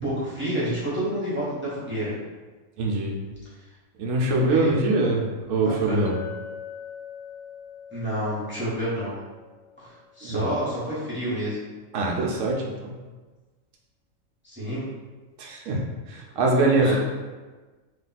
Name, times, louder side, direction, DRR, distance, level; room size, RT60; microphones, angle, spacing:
voice 1, 0.0-2.1 4.4-4.7 5.6-6.0 7.9-9.1 9.8-11.6 14.4-14.8 16.8-17.0, right 1 dB, 10° right, -10 dB, 1.1 m, -29 dB
voice 2, 2.8-3.2 4.0-6.1 10.2-10.5 11.9-12.9 15.4-17.0, right 2 dB, 70° right, -1 dB, 1.1 m, -23 dB
Chink clink, 6.1-10.5, left 7 dB, 90° left, 1.0 m, -42 dB
3.2 x 2.9 x 4.1 m, 1.3 s
omnidirectional pair, 1.4 m